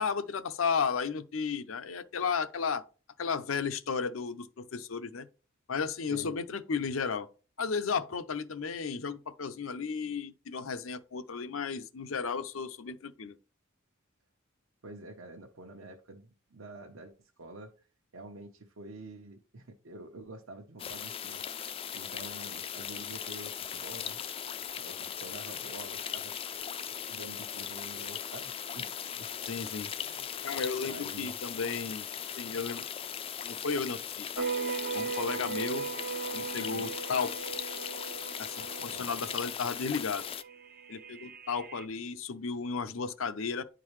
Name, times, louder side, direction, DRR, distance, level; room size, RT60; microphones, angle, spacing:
voice 1, 0.0-2.8 3.2-5.3 5.7-7.3 7.6-13.4 29.4-29.9 30.4-32.1 32.3-32.8 33.4-34.5 34.9-35.9 36.3-37.4 38.4-40.3 40.9-43.6, left 5 dB, 75° left, 0.6 m, -34 dB
voice 2, 14.8-17.7 18.1-21.4 21.9-24.2 24.7-26.3 27.1-29.3 30.0-30.3 30.9-31.4 36.5-36.9 38.8-39.1, right 2 dB, 75° right, 0.9 m, -47 dB
sound 1, 20.8-40.4, left 8 dB, 25° left, 0.3 m, -39 dB
sound 2, 34.4-41.8, right 6 dB, 45° right, 0.4 m, -38 dB
10.5 x 3.8 x 3.1 m
head